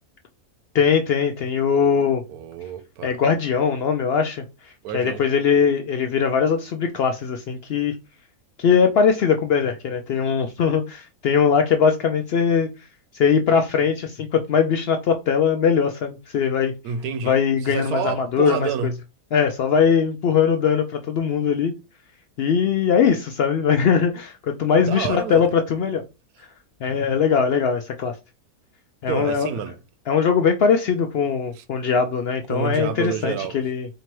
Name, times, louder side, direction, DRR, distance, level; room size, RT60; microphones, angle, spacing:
voice 1, 0.7-2.2 3.0-4.4 4.9-8.0 8.6-12.7 13.1-16.7 17.2-18.9 19.3-21.7 22.4-26.0 26.8-28.2 29.0-29.5 30.1-33.9, left 6 dB, 75° left, 0.5 m, -20 dB
voice 2, 2.3-3.1 4.8-5.2 16.8-19.0 24.8-25.5 29.1-29.8 31.5-31.6 32.5-33.6, right 7 dB, 80° right, 1.1 m, -29 dB
4.5 x 2.9 x 2.9 m
omnidirectional pair, 1.6 m